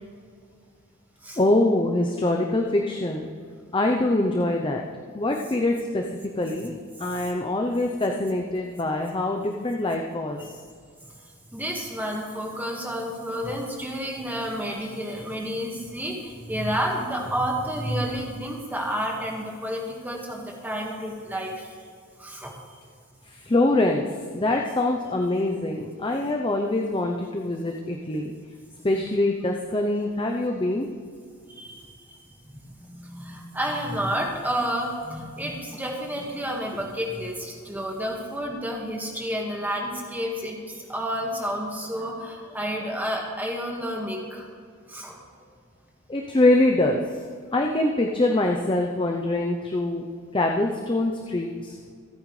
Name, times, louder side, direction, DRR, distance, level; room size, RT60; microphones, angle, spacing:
voice 1, 1.4-3.3 3.7-4.8 5.1-6.0 6.4-10.6 23.3-24.1 24.3-28.3 28.8-30.9 46.1-47.2 47.5-50.1 50.3-51.9, left 2 dB, 20° left, 2 dB, 0.6 m, -24 dB
voice 2, 11.5-21.7 22.2-22.5 31.6-31.8 32.9-44.5 44.9-45.2, equal, 10° right, 0 dB, 1.6 m, -30 dB
24.5 x 8.9 x 3.3 m, 2.1 s
head